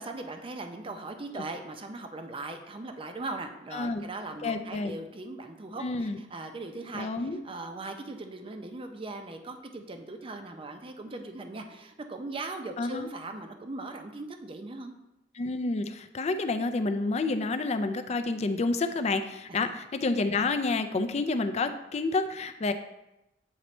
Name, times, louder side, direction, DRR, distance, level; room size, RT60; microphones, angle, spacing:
voice 1, 0.0-14.9 19.5-19.7, right 2 dB, 30° right, 5 dB, 0.6 m, -39 dB
voice 2, 3.7-4.1 4.4-5.0 5.8-6.2 6.9-7.4 12.8-13.1 15.3-22.7, left 3 dB, 35° left, 9 dB, 0.4 m, -29 dB
8.2 x 3.0 x 4.3 m, 0.92 s
head